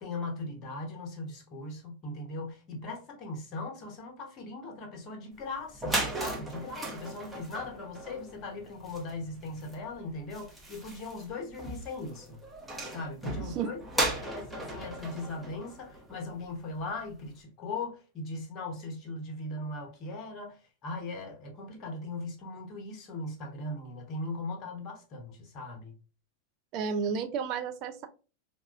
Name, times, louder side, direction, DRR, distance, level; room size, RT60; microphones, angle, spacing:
voice 1, 0.0-12.4 12.9-13.8 14.2-20.6 20.8-25.9, left 2 dB, 35° left, 0.9 m, -39 dB
sound 1, 5.4-5.5 5.7-16.5, right 1 dB, 5° right, 0.7 m, -37 dB
voice 2, 13.4-13.7 26.7-28.1, right 6 dB, 40° right, 0.3 m, -32 dB
4.0 x 2.3 x 2.4 m
figure-of-eight pair, 90°, 0 cm